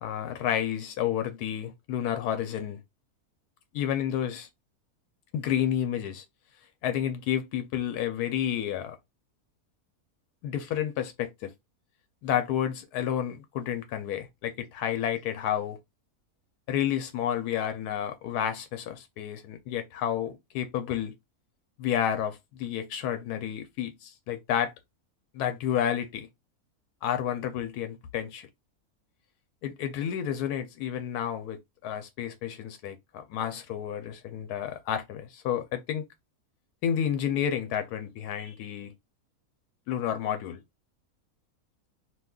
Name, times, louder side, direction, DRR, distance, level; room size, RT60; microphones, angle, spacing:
voice 1, 0.0-2.8 3.7-4.5 5.3-6.2 6.8-9.0 10.4-11.5 12.2-15.8 16.7-21.1 21.8-24.7 25.3-26.3 27.0-28.5 29.6-36.0 36.8-38.9 39.9-40.6, left 10 dB, 85° left, 1.1 m, -30 dB
2.7 x 2.3 x 3.5 m
omnidirectional pair, 1.6 m